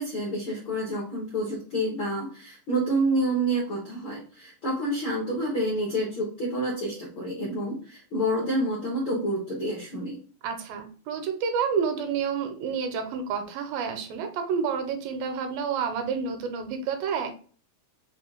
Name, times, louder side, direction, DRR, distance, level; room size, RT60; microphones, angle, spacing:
voice 1, 0.0-10.2, right 1 dB, 65° left, -3 dB, 1.2 m, -28 dB
voice 2, 10.4-17.3, right 6 dB, 90° right, 7 dB, 2.5 m, -29 dB
5.7 x 2.5 x 3.5 m, 0.41 s
omnidirectional pair, 4.0 m